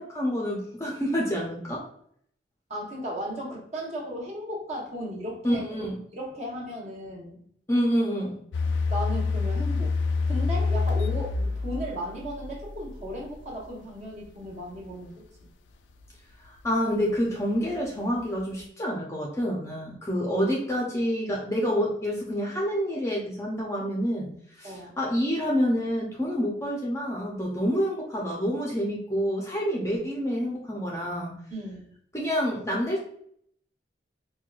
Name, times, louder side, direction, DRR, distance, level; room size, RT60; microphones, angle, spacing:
voice 1, 0.0-1.8 5.4-6.0 7.7-8.4 16.6-24.3 24.6-31.3 32.1-33.0, equal, 15° left, -3 dB, 0.5 m, -27 dB
voice 2, 2.7-5.8 6.1-7.4 8.9-9.9 10.3-15.2 24.6-24.9 31.5-31.9, equal, 35° right, -3 dB, 0.9 m, -35 dB
sound 1, 8.5-13.3 13.7-13.8, left 4 dB, 80° left, 0.3 m, -27 dB
4.4 x 2.2 x 2.3 m, 0.65 s
head